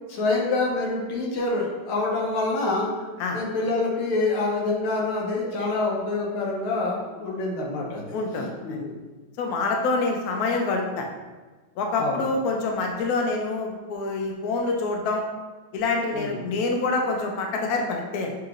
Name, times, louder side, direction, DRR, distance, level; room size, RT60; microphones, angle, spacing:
voice 1, 0.1-8.1 8.6-9.0 12.0-12.2 16.1-16.4, left 3 dB, 90° left, -3 dB, 1.8 m, -26 dB
voice 2, 8.1-8.8 9.4-11.1 11.8-15.2 15.7-18.3, left 3 dB, 70° left, 1 dB, 0.9 m, -26 dB
7.0 x 2.9 x 2.5 m, 1.3 s
omnidirectional pair, 2.3 m